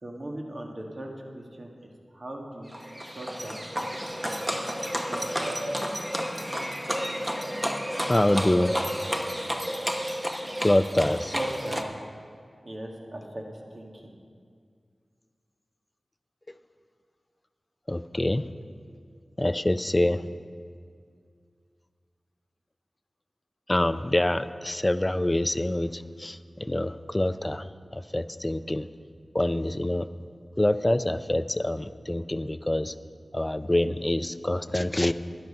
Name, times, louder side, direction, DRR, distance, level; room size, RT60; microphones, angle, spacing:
voice 1, 0.0-2.8 3.2-3.6 4.5-4.6 5.0-5.5 11.3-11.9 12.6-13.4 13.7-14.1, right 1 dB, 50° right, 0 dB, 1.8 m, -39 dB
Livestock farm animals working animals, 2.7-11.8, equal, 10° right, 1.0 m, -31 dB
voice 2, 8.1-8.8 10.6-11.3 17.9-18.5 19.4-20.3 23.7-28.9 29.3-30.1 30.6-32.9 33.3-35.1, left 1 dB, 20° left, 13 dB, 0.4 m, -26 dB
12.5 x 10.5 x 5.5 m, 2.2 s
wide cardioid pair, 60°, 0 cm